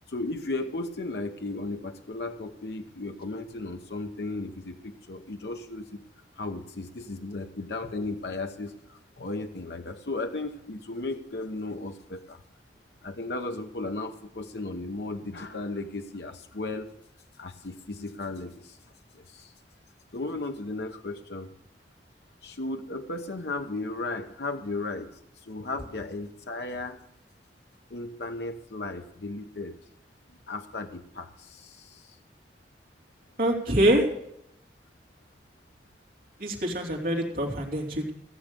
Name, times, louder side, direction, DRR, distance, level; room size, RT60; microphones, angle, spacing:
voice 1, 0.1-6.0 6.4-12.4 13.0-16.9 17.4-18.8 19.1-19.5 20.1-21.5 22.4-27.0 27.9-29.7 30.5-32.2, left 2 dB, 65° left, 6 dB, 0.9 m, -35 dB
voice 2, 33.4-34.0 36.4-38.1, right 1 dB, 55° right, 0 dB, 3.1 m, -25 dB
16.0 x 7.4 x 6.7 m, 0.78 s
head